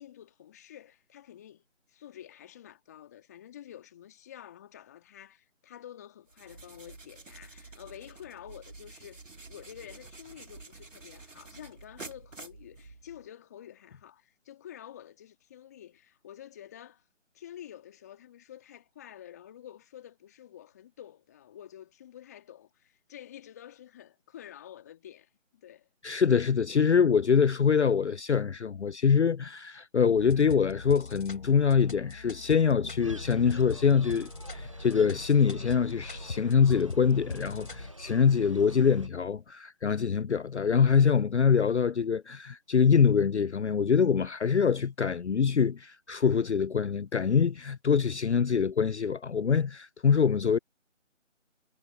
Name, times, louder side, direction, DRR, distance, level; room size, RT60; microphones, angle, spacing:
voice 1, 0.0-1.6 1.9-9.2 9.5-17.0 17.3-25.9, left 11 dB, 15° left, 2.2 m, -49 dB
sound 1, 6.3-13.3, right 3 dB, 75° right, 2.1 m, -49 dB
voice 2, 26.0-50.6, left 6 dB, 65° left, 0.5 m, -24 dB
sound 2, 30.2-37.9, left 4 dB, 45° left, 4.9 m, -42 dB
sound 3, 33.0-39.1, right 1 dB, 25° right, 0.8 m, -45 dB
figure-of-eight pair, 165°, 38 cm